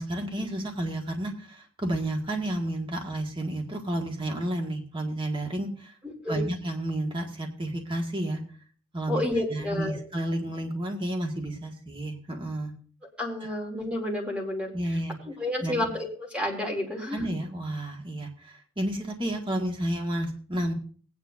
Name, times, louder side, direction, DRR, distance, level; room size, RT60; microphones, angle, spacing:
voice 1, 0.0-5.9 6.3-8.4 8.9-9.2 9.5-12.7 13.4-13.5 14.7-15.1 15.6-15.9 17.1-20.7, right 1 dB, 25° right, 2 dB, 1.8 m, -31 dB
voice 2, 6.0-6.4 9.1-10.0 13.2-14.7 15.2-17.2, left 1 dB, 5° right, -1 dB, 2.9 m, -30 dB
19.0 x 9.6 x 2.7 m, 0.43 s
head